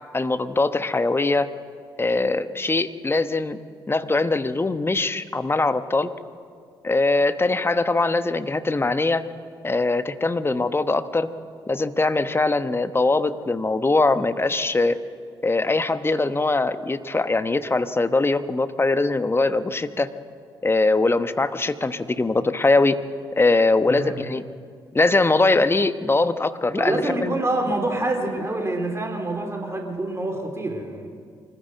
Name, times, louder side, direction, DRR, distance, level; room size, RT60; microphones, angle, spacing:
voice 1, 0.1-1.5 2.0-3.6 3.9-6.1 6.8-9.2 9.6-11.3 11.7-15.0 15.4-20.1 20.6-23.0 23.3-24.4 24.9-27.4, left 3 dB, 20° left, 11 dB, 1.1 m, -22 dB
voice 2, 23.9-24.2 26.8-31.1, right 2 dB, 25° right, 3 dB, 3.4 m, -26 dB
24.5 x 14.5 x 7.9 m, 2.1 s
hypercardioid pair, 45°, 11 cm